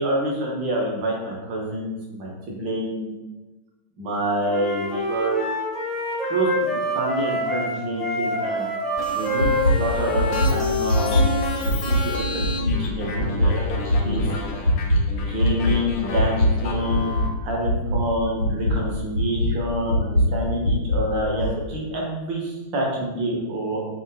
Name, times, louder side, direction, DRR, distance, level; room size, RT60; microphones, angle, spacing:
voice 1, 0.0-3.1 4.0-5.5 6.3-8.7 9.1-14.7 15.3-23.9, right 1 dB, 45° right, -3 dB, 0.6 m, -27 dB
Wind instrument woodwind instrument, 4.4-11.5, left 1 dB, 15° left, 1.0 m, -27 dB
sound 1, 9.0-17.3, left 1 dB, 45° left, 0.5 m, -32 dB
sound 2, 9.4-9.7 10.1-10.5 10.9-11.2 11.6-12.0 12.4-12.7 13.1-13.5 13.9-14.2 14.6-15.0 15.4-15.7 16.1-16.5 16.9-17.2 17.6-18.0 18.4-18.7 19.1-19.5 19.9-20.2 20.6-21.0 21.4-21.5, left 1 dB, 85° right, 0.8 m, -20 dB
2.7 x 2.2 x 2.2 m, 1.1 s
figure-of-eight pair, 90°, 0 cm